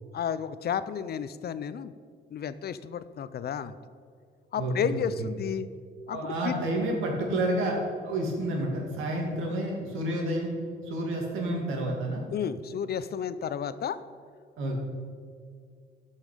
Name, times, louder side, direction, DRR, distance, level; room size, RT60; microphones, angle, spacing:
voice 1, 0.1-1.9 2.3-3.8 4.5-5.7 6.1-6.6 12.3-14.0, left 8 dB, 55° left, 14 dB, 0.5 m, -32 dB
voice 2, 4.5-5.3 6.1-10.6 10.8-12.2 14.6-14.8, right 1 dB, 85° right, 0 dB, 2.4 m, -30 dB
13.5 x 5.7 x 5.1 m, 2.1 s
cardioid pair, 90°, 20 cm